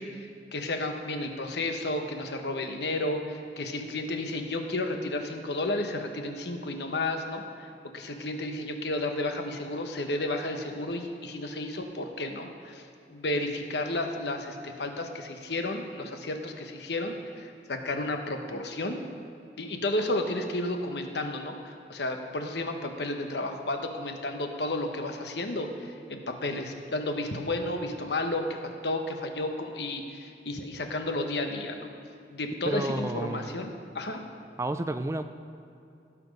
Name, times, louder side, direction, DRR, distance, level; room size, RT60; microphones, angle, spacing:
voice 1, 0.0-19.0 19.6-31.9 32.3-34.2, left 2 dB, 70° left, 5 dB, 1.0 m, -32 dB
voice 2, 32.7-33.5 34.6-35.2, right 2 dB, 15° right, 9 dB, 0.3 m, -30 dB
17.0 x 6.1 x 5.3 m, 2.6 s
head